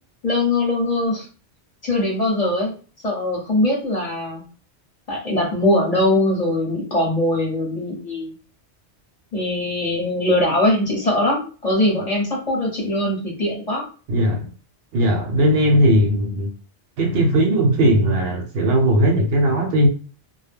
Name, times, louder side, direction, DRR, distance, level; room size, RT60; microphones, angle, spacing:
voice 1, 0.2-1.3 1.8-2.7 3.0-4.4 5.1-8.3 9.3-13.9, left 1 dB, 35° left, 0.9 m, -21 dB
voice 2, 14.1-14.5 14.9-16.5 17.0-19.9, right 1 dB, 65° right, 0.8 m, -18 dB
2.1 x 2.1 x 3.3 m
omnidirectional pair, 1.1 m